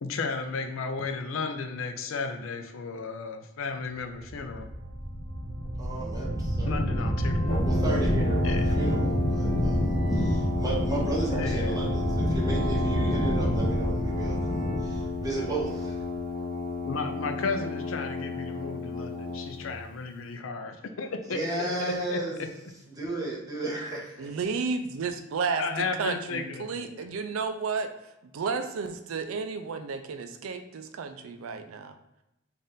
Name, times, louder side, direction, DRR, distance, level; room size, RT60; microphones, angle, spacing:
voice 1, 0.0-4.7 6.7-7.5 8.4-8.7 11.3-11.8 16.9-21.7 22.1-22.2 25.6-27.1, left 4 dB, 75° left, 6 dB, 0.5 m, -34 dB
sound 1, 4.3-16.3, equal, 20° left, 1.2 m, -28 dB
voice 2, 5.8-6.8 7.6-16.0 21.3-22.4 22.9-24.3, right 2 dB, 20° right, -4 dB, 1.1 m, -34 dB
Brass instrument, 7.5-19.7, left 3 dB, 45° left, 0.8 m, -33 dB
voice 3, 24.2-27.9 28.3-31.9, right 5 dB, 90° right, 8 dB, 0.4 m, -32 dB
4.0 x 2.5 x 3.7 m, 0.91 s
head